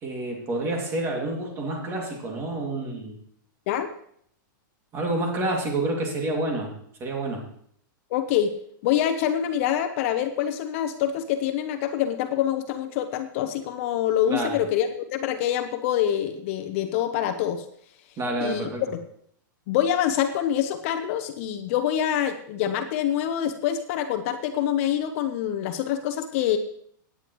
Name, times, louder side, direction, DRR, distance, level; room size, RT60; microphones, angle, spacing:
voice 1, 0.0-3.2 4.9-6.7 7.0-7.4 14.3-14.6 18.2-18.8, right 2 dB, 20° right, 1 dB, 2.4 m, -28 dB
voice 2, 8.1-8.5 8.8-17.7 18.4-18.7 19.7-26.6, left 10 dB, 40° left, 8 dB, 0.8 m, -25 dB
17.0 x 9.6 x 3.1 m, 0.65 s
supercardioid pair, 160°, 11 cm